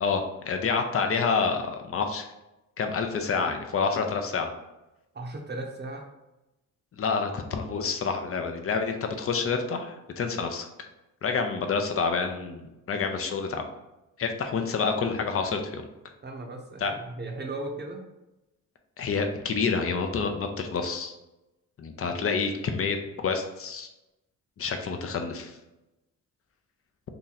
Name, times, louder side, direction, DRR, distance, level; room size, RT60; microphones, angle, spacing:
voice 1, 0.0-2.2 2.8-4.5 7.0-10.7 11.2-12.6 12.9-13.6 14.2-15.8 16.8-16.9 19.0-21.1 21.8-23.9 24.6-25.6, left 5 dB, 40° left, 5 dB, 0.6 m, -28 dB
voice 2, 5.1-6.0 16.2-18.0, right 2 dB, 30° right, 2 dB, 0.8 m, -36 dB
2.9 x 2.6 x 4.0 m, 0.97 s
cardioid pair, 80°, 34 cm